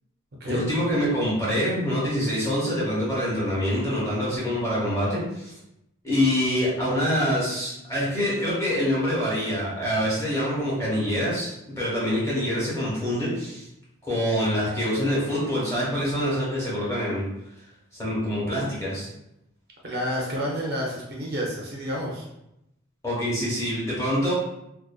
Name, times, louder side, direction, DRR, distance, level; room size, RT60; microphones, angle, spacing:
voice 1, 0.5-5.5 6.0-13.7 14.0-17.2 18.0-19.1 23.0-24.3, equal, 15° left, -8 dB, 0.9 m, -25 dB
voice 2, 19.8-22.3, equal, 45° right, -2 dB, 0.4 m, -29 dB
2.5 x 2.2 x 2.3 m, 0.84 s
head